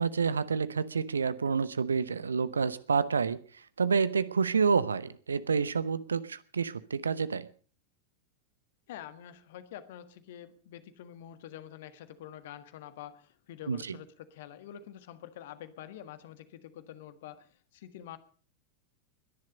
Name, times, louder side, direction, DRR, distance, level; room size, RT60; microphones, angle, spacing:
voice 1, 0.0-7.5 13.7-14.0, right 5 dB, 75° right, 16 dB, 0.9 m, -29 dB
voice 2, 8.9-18.2, left 11 dB, 55° left, 11 dB, 1.6 m, -47 dB
21.5 x 10.5 x 5.2 m, 0.41 s
figure-of-eight pair, 90°, 0 cm